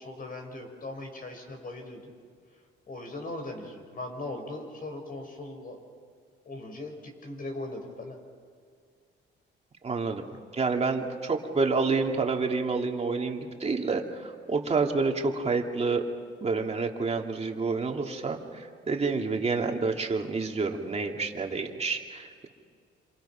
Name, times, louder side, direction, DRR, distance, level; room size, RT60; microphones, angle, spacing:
voice 1, 0.0-2.1 2.9-5.8 6.4-8.2 10.2-10.4, left 2 dB, 45° left, 4 dB, 5.6 m, -39 dB
voice 2, 9.8-10.2 10.5-16.1 16.4-22.5, right 4 dB, 30° right, 2 dB, 2.7 m, -28 dB
27.5 x 27.0 x 5.9 m, 2.1 s
cardioid pair, 90°, 20 cm